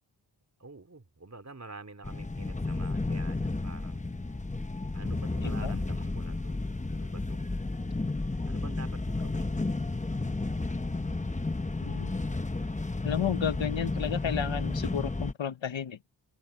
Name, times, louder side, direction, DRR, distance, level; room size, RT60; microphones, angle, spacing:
voice 1, 0.6-4.3 4.9-6.6 6.9-7.4 8.4-9.5, right 3 dB, 35° right, 3.7 m, -47 dB
sound 1, 2.0-15.3, left 2 dB, 15° left, 1.0 m, -32 dB
voice 2, 11.8-12.2 13.0-16.0, left 8 dB, 70° left, 1.0 m, -32 dB
wide cardioid pair, 70°, 48 cm